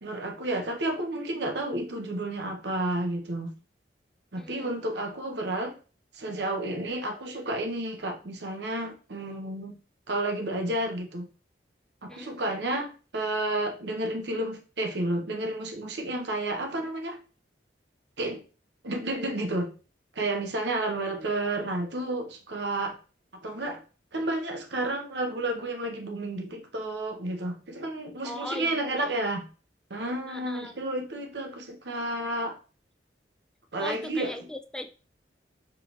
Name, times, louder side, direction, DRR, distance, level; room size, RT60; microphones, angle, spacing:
voice 1, 0.0-3.5 4.3-5.8 6.1-9.8 10.1-11.3 12.0-17.2 18.2-18.4 18.8-19.7 20.2-23.0 23.4-23.8 24.1-29.5 29.9-32.6 33.7-34.3, right 1 dB, 70° right, 4 dB, 1.0 m, -31 dB
voice 2, 4.4-4.7 12.1-12.3 28.2-29.2 30.2-30.8 33.8-34.9, left 1 dB, 5° left, 7 dB, 0.4 m, -39 dB
4.6 x 3.3 x 3.0 m, 0.36 s
head